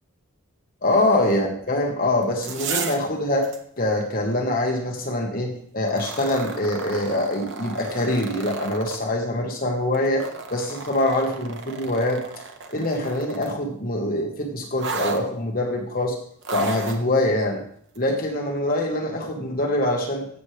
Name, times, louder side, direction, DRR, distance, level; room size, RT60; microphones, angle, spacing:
voice 1, 0.8-3.5 3.8-12.2 12.7-16.2 16.5-17.6 17.9-20.3, left 1 dB, 40° left, 2 dB, 1.4 m, -24 dB
sound 1, 2.2-3.1 3.4-3.6 5.9-9.0 9.9-13.6 14.8-15.2 16.4-17.0 17.9-18.0, right 4 dB, 55° right, 1.0 m, -33 dB
15.5 x 7.3 x 3.3 m, 0.64 s
head